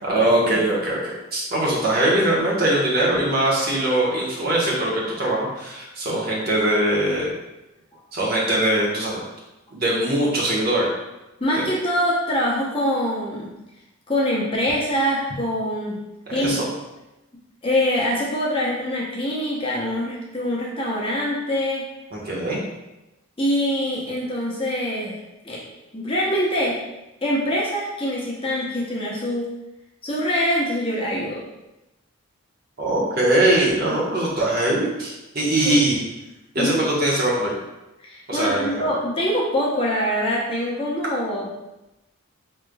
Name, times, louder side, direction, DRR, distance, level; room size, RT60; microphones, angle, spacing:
voice 1, 0.0-7.3 8.1-9.2 9.7-10.9 11.5-11.7 16.3-16.6 22.1-22.6 32.8-35.1 35.3-36.0 36.5-37.5 38.3-38.9, right 1 dB, 45° right, -4 dB, 1.0 m, -21 dB
voice 2, 11.4-13.5 14.1-16.0 16.3-16.5 17.6-21.8 23.4-25.2 25.4-25.6 25.9-26.8 27.2-29.5 30.0-31.4 33.9-34.0 35.6-35.8 36.6-36.8 38.0-41.5, equal, 25° left, -5 dB, 0.7 m, -24 dB
5.0 x 3.2 x 2.2 m, 0.97 s
head